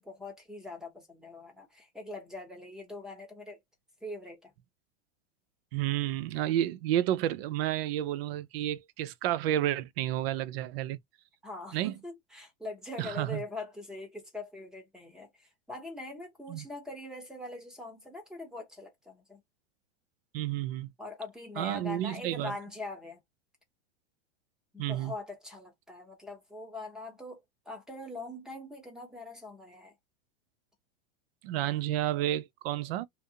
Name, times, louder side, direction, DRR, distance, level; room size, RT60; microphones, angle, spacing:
voice 1, 0.0-3.6 4.0-4.5 11.4-19.4 21.0-23.2 24.7-29.9, left 2 dB, ahead, 0.7 m, -42 dB
voice 2, 5.7-11.0 11.7-11.9 13.0-13.4 16.5-16.7 20.3-20.9 21.6-22.5 24.8-25.1 31.4-33.0, right 13 dB, 55° right, 0.5 m, -31 dB
2.5 x 2.0 x 2.7 m
supercardioid pair, 135°, 37 cm